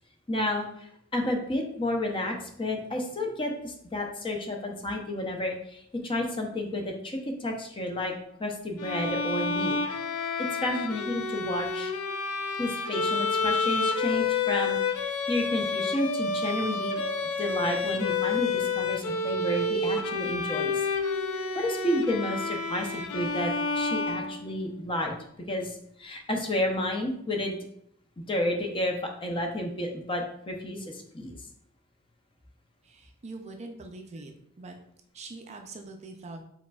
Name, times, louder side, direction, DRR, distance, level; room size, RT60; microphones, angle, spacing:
voice 1, 0.3-8.1 8.4-9.8 10.6-11.9 12.6-17.0 17.4-20.8 21.5-25.1 25.5-27.5 28.2-31.4, left 1 dB, 25° left, 2 dB, 0.6 m, -31 dB
Bowed string instrument, 8.8-24.8, left 4 dB, 85° left, 0.5 m, -29 dB
voice 2, 32.8-34.8 35.1-36.4, right 3 dB, 30° right, 4 dB, 0.4 m, -43 dB
5.0 x 4.1 x 2.3 m, 0.71 s
head